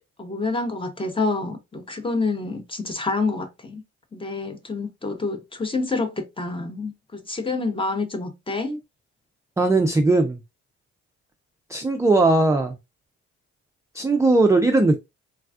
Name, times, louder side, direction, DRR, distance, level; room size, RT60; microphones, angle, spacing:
voice 1, 0.2-3.8 4.1-8.8, left 3 dB, 15° left, 0.7 m, -27 dB
voice 2, 9.6-10.4 11.7-12.8 13.9-15.0, right 2 dB, 10° right, 0.3 m, -18 dB
3.3 x 2.2 x 2.4 m
cardioid pair, 90°, 30 cm